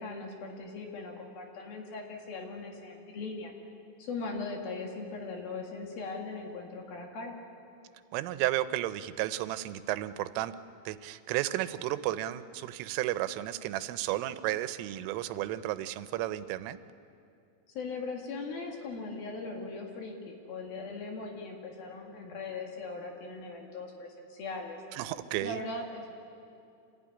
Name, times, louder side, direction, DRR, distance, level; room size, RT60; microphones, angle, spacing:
voice 1, 0.0-3.5 4.0-7.4 17.7-24.8 25.4-26.1, left 3 dB, 55° left, 1 dB, 3.4 m, -39 dB
voice 2, 8.1-10.5 10.9-16.8 24.9-25.6, right 14 dB, 90° right, 13 dB, 3.3 m, -33 dB
27.0 x 15.5 x 10.0 m, 2.5 s
omnidirectional pair, 5.6 m